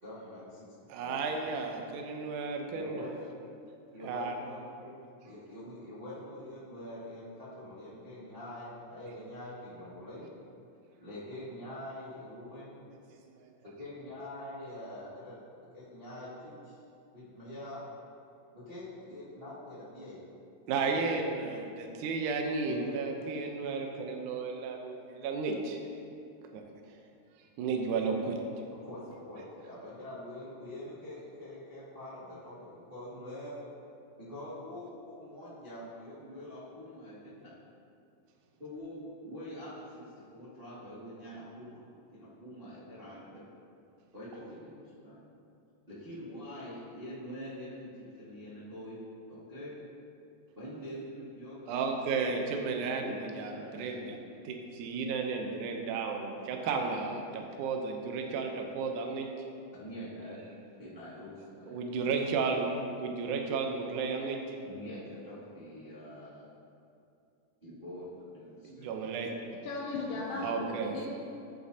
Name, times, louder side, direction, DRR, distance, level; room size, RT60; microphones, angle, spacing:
voice 1, 0.0-0.7 1.0-1.6 2.7-3.1 3.9-5.0 5.2-10.3 11.0-12.8 13.6-15.4 15.7-16.8 17.1-17.8 18.5-20.2 20.8-21.3 22.6-22.9 28.8-33.6 34.2-37.5 38.6-40.0 40.3-43.4 44.1-45.2 45.9-47.9 48.2-49.0 49.3-49.7 50.5-51.9 52.7-54.1 59.7-60.4 60.8-61.8 64.7-66.4 67.6-68.9 70.3-71.1, left 1 dB, 20° right, -11 dB, 1.5 m, -45 dB
voice 2, 0.9-3.1 4.0-4.4 20.7-25.8 26.5-26.6 27.6-28.4 51.7-54.2 54.4-59.3 61.7-62.7 63.0-64.4 68.6-69.3 70.4-70.9, right 4 dB, 75° right, 2 dB, 2.0 m, -33 dB
voice 3, 69.5-70.4 70.7-71.1, left 3 dB, 80° left, -6 dB, 2.8 m, -37 dB
14.0 x 8.4 x 2.8 m, 2.6 s
omnidirectional pair, 4.2 m